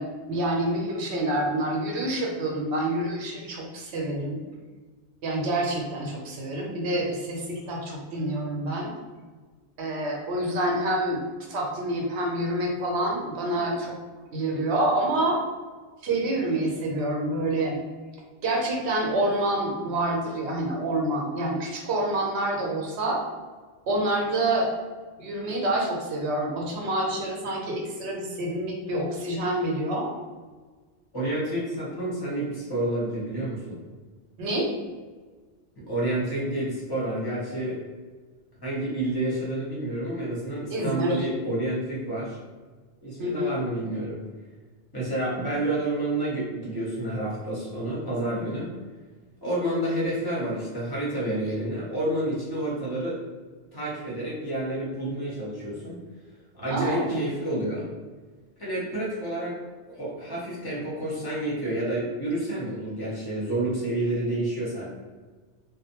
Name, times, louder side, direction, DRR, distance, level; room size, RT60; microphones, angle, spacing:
voice 1, 0.0-4.4 5.2-8.9 9.8-11.2 11.5-13.9 14.3-15.4 16.0-17.8 18.4-23.2 23.9-24.7 25.2-30.1 34.4-34.7 40.7-41.3 43.2-43.5 56.7-57.2, right 1 dB, 70° right, -1 dB, 0.9 m, -27 dB
voice 2, 31.1-33.8 35.9-37.8 38.6-42.4 43.0-44.2 44.9-48.7 49.4-53.2 53.7-56.0 56.5-57.9 58.6-59.6 59.9-64.9, right 1 dB, 25° left, -6 dB, 0.7 m, -29 dB
2.5 x 2.1 x 2.8 m, 1.4 s
omnidirectional pair, 1.2 m